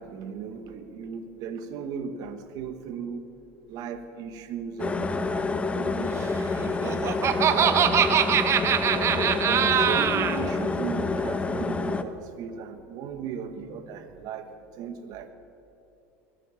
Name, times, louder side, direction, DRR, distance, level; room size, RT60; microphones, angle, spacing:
voice 1, 0.0-3.3 3.7-7.9 8.5-8.6 8.9-15.3, right 6 dB, 60° right, 9 dB, 1.4 m, -37 dB
sound 1, 4.8-12.0, left 3 dB, 15° left, 0.8 m, -28 dB
Laughter, 6.6-10.4, right 8 dB, 40° right, 0.9 m, -23 dB
22.0 x 8.1 x 7.0 m, 2.9 s
supercardioid pair, 110°, 7 cm